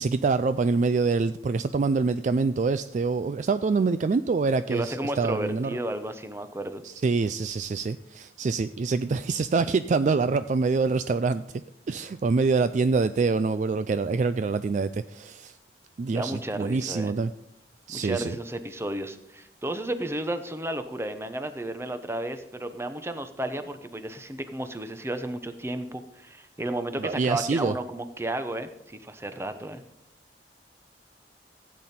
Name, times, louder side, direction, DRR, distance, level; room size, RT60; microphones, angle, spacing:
voice 1, 0.0-5.8 6.8-11.4 11.9-15.5 16.0-17.3 17.9-18.4 27.0-27.7, right 4 dB, 45° right, 13 dB, 0.3 m, -25 dB
voice 2, 4.7-6.8 16.1-17.1 17.9-29.8, right 1 dB, 15° right, 9 dB, 0.8 m, -33 dB
15.5 x 8.3 x 4.3 m, 0.79 s
head